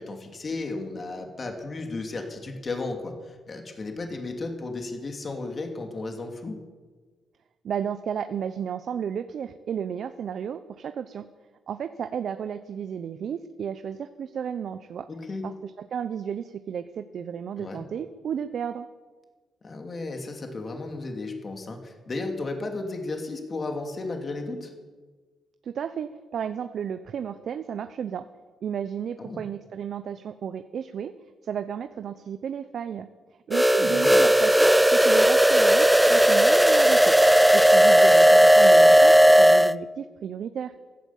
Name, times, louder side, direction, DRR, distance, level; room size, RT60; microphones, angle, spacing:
voice 1, 0.0-6.6 15.1-15.4 17.6-17.8 19.6-24.7 29.2-29.4 33.7-34.2, left 3 dB, 40° left, 3 dB, 2.6 m, -34 dB
voice 2, 7.6-11.3 11.7-15.1 15.4-18.9 25.6-28.2 28.6-31.1 31.4-33.1 33.5-37.2 37.5-40.7, right 8 dB, 65° right, 10 dB, 0.7 m, -33 dB
sound 1, 33.5-39.7, right 1 dB, 5° right, 0.5 m, -16 dB
15.5 x 12.5 x 7.2 m, 1.4 s
cardioid pair, 80°, 0 cm